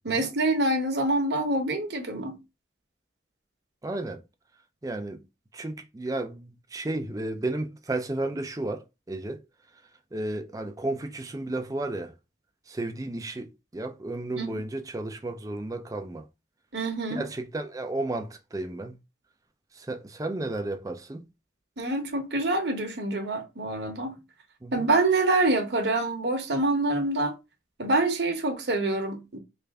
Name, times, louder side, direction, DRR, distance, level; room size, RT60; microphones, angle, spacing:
voice 1, 0.0-2.4 14.4-14.6 16.7-17.2 21.8-24.2 24.7-27.3 27.8-29.4, right 2 dB, 60° right, 0.9 m, -26 dB
voice 2, 3.8-4.2 4.8-5.2 5.5-9.4 10.1-12.1 12.7-13.5 13.7-16.2 17.1-19.0 19.7-21.3 24.6-24.9, right 2 dB, 20° right, 0.4 m, -33 dB
3.3 x 2.5 x 3.4 m
head